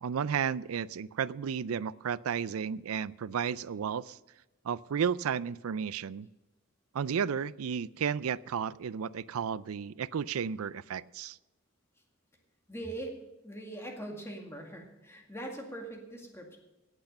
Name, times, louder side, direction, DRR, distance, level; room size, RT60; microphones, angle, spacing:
voice 1, 0.0-4.2 4.6-6.3 6.9-11.4, right 7 dB, 90° right, 20 dB, 0.4 m, -33 dB
voice 2, 12.7-13.2 13.4-16.6, right 1 dB, 10° left, 2 dB, 2.0 m, -41 dB
17.5 x 8.2 x 5.5 m, 1.1 s
head